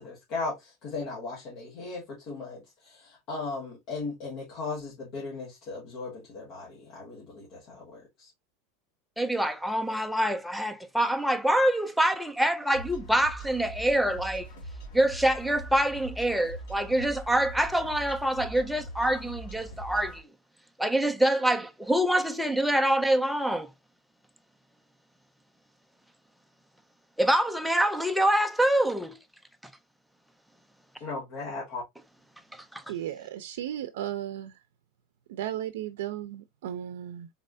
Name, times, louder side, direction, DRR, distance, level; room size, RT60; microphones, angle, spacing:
voice 1, 0.0-8.3 31.0-31.8, left 3 dB, 45° left, 1.7 m, -37 dB
voice 2, 9.2-14.5 14.9-20.2 20.8-23.7 27.2-29.2 32.5-32.8, right 1 dB, ahead, 0.4 m, -25 dB
sound 1, 12.7-20.2, right 1 dB, 70° left, 1.7 m, -42 dB
voice 3, 32.9-34.6 35.3-37.3, right 12 dB, 90° right, 0.5 m, -35 dB
4.1 x 3.3 x 2.5 m
supercardioid pair, 160°, 0 cm